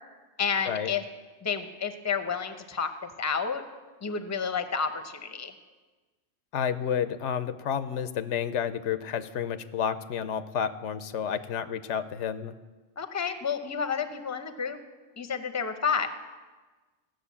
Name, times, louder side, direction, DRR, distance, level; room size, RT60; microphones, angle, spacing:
voice 1, 0.4-1.0 1.4-3.6 4.0-5.5 13.0-14.8 15.2-16.1, left 6 dB, 20° left, 9 dB, 0.6 m, -30 dB
voice 2, 6.5-12.5, left 8 dB, 85° left, 13 dB, 1.0 m, -30 dB
15.0 x 6.5 x 8.3 m, 1.3 s
omnidirectional pair, 1.2 m